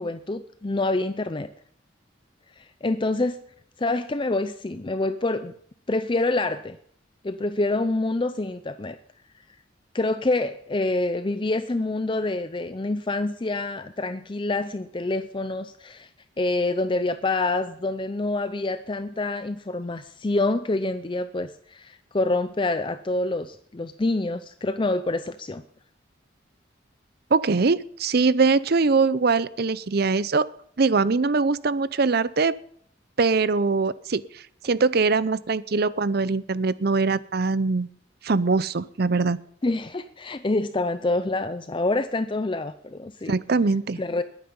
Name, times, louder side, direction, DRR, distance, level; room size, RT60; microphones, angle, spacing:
voice 1, 0.0-1.5 2.6-3.4 3.8-5.5 5.9-6.8 7.2-9.0 9.9-16.1 16.4-25.6 39.6-43.4 44.0-44.2, left 2 dB, 25° left, 11 dB, 0.5 m, -26 dB
voice 2, 27.3-30.5 30.8-32.5 33.2-34.2 34.6-37.9 38.2-39.4 43.3-44.0, right 4 dB, 55° right, 17 dB, 0.6 m, -22 dB
20.5 x 9.3 x 5.4 m, 0.65 s
head